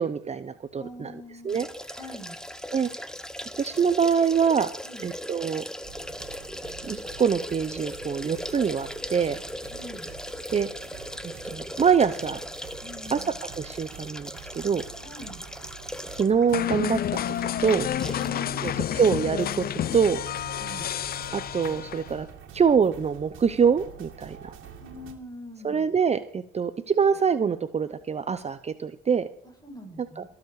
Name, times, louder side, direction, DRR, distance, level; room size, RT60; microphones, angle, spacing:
voice 1, 0.0-1.1 1.4-1.7 2.7-2.9 3.6-4.7 5.0-5.6 6.9-9.4 10.5-10.7 11.2-12.4 13.1-13.2 13.6-14.8 16.1-17.3 17.6-17.9 18.6-20.2 21.3-22.3 22.5-24.5 25.6-29.3 30.2-30.3, right 6 dB, 35° right, 11 dB, 0.7 m, -25 dB
voice 2, 0.8-1.7 1.9-2.4 4.8-5.1 9.7-10.1 12.8-13.4 15.0-15.4 18.2-19.1 20.6-20.9 24.8-25.9 29.4-30.3, equal, 20° left, 3 dB, 6.0 m, -44 dB
sound 1, 1.5-16.5 16.9-17.0 18.0-18.4 18.7-18.8, equal, 5° left, 0.9 m, -38 dB
sound 2, 5.8-25.1, right 7 dB, 85° right, 2.2 m, -46 dB
sound 3, 16.5-22.2, left 11 dB, 50° left, 0.4 m, -30 dB
20.5 x 7.3 x 4.8 m, 0.66 s
cardioid pair, 90°, 20 cm